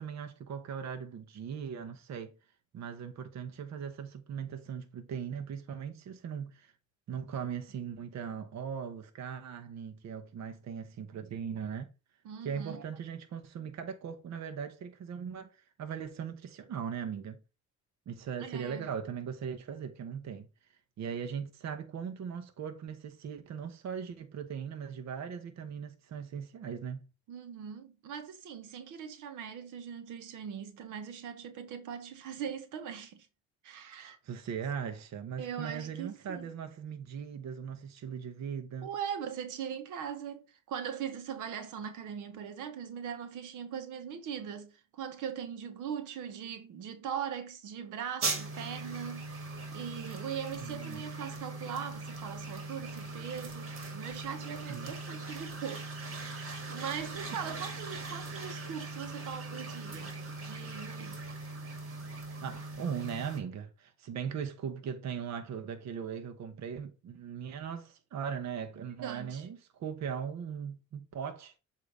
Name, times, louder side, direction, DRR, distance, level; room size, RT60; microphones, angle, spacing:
voice 1, 0.0-2.3 2.7-6.7 7.1-11.9 12.4-17.4 18.1-20.5 21.0-27.1 34.0-38.9 50.6-51.0 54.7-54.9 57.3-57.4 62.4-71.5, right 7 dB, 65° right, 1.0 m, -39 dB
voice 2, 12.2-12.8 18.4-18.9 27.3-33.3 33.6-34.2 35.4-36.5 38.8-49.3 49.7-55.9 56.1-56.4 56.7-61.2 68.7-69.5, right 8 dB, 90° right, 1.1 m, -40 dB
sound 1, 48.2-63.4, right 3 dB, 45° right, 2.1 m, -40 dB
7.8 x 2.8 x 4.8 m
cardioid pair, 90°, 30 cm